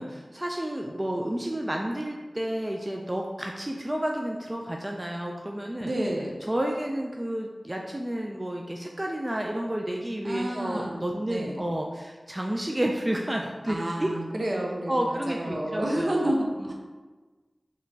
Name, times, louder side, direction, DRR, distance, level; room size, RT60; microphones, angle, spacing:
voice 1, 0.0-5.9 6.5-14.1 14.9-16.3 16.6-16.7, right 1 dB, 25° right, 1 dB, 0.3 m, -31 dB
voice 2, 5.8-6.3 10.2-11.5 13.7-16.7, right 1 dB, 60° right, -1 dB, 0.6 m, -30 dB
4.1 x 3.0 x 2.7 m, 1.3 s
wide cardioid pair, 60°, 0 cm